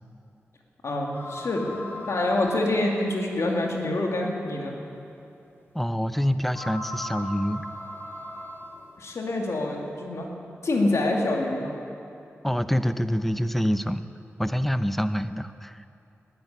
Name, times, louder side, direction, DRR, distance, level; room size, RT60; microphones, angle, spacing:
voice 1, 0.8-4.8 9.0-10.3 10.6-11.8, left 2 dB, 70° left, 0 dB, 2.4 m, -26 dB
sound 1, 1.1-3.2 3.9-4.0 4.5-4.6 6.5-9.0, left 1 dB, 45° left, 2.7 m, -38 dB
voice 2, 5.7-7.7 12.4-14.1 14.4-15.8, equal, 5° left, 11 dB, 0.7 m, -26 dB
12.0 x 10.5 x 9.9 m, 2.6 s
cardioid pair, 45°, 5 cm